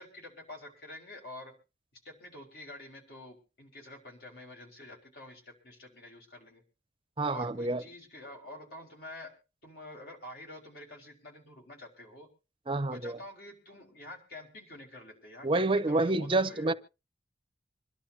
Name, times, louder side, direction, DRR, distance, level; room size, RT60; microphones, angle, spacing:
voice 1, 0.0-1.5 1.9-6.6 7.3-9.3 9.6-12.3 12.9-16.8, left 1 dB, 60° left, 5.2 m, -48 dB
voice 2, 7.2-7.8 12.7-13.1 15.4-16.7, right 2 dB, 30° right, 0.7 m, -28 dB
26.0 x 11.5 x 2.8 m
head